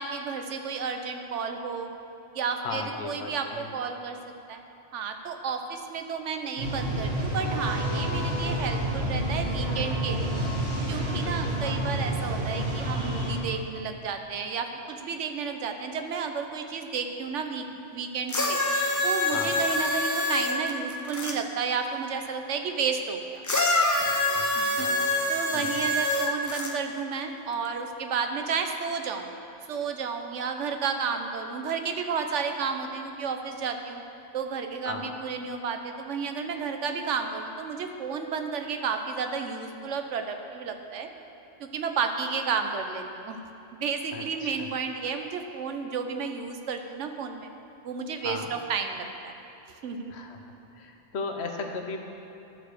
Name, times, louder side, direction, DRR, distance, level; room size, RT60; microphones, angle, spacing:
voice 1, 0.0-1.9 2.3-4.2 4.5-4.6 4.9-10.3 10.9-17.6 17.9-18.6 19.0-23.4 24.5-24.9 25.3-29.3 29.7-34.0 34.3-41.1 41.6-43.4 43.7-47.5 47.8-49.3 49.8-50.1, right 5 dB, 85° right, 6 dB, 1.1 m, -32 dB
voice 2, 2.6-3.7 11.2-11.8 19.3-19.6 24.3-25.1 25.5-25.8 34.8-35.1 44.1-44.7 48.2-48.5 50.1-50.4 50.7-52.0, left 4 dB, 65° left, 4 dB, 1.1 m, -37 dB
sound 1, 6.6-13.3, right 1 dB, 60° right, 2.0 m, -29 dB
sound 2, 18.3-21.3 23.4-26.7 27.6-27.7, left 1 dB, 20° left, 0.6 m, -26 dB
12.5 x 4.8 x 6.6 m, 2.9 s
omnidirectional pair, 1.2 m